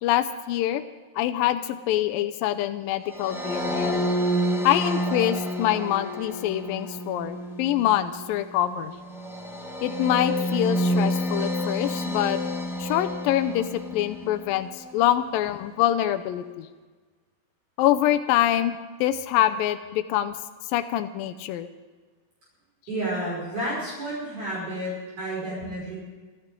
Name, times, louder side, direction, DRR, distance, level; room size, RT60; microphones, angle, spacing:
voice 1, 0.0-0.8 1.2-4.0 4.6-9.0 9.8-12.4 12.8-13.7 13.9-16.7 17.8-20.4 20.7-21.7, left 12 dB, 80° left, 9 dB, 2.3 m, -25 dB
sound 1, 3.1-14.4, equal, 5° right, 0.4 m, -29 dB
voice 2, 22.9-25.9, right 1 dB, 55° right, -6 dB, 6.8 m, -31 dB
26.5 x 12.0 x 3.7 m, 1.4 s
omnidirectional pair, 4.3 m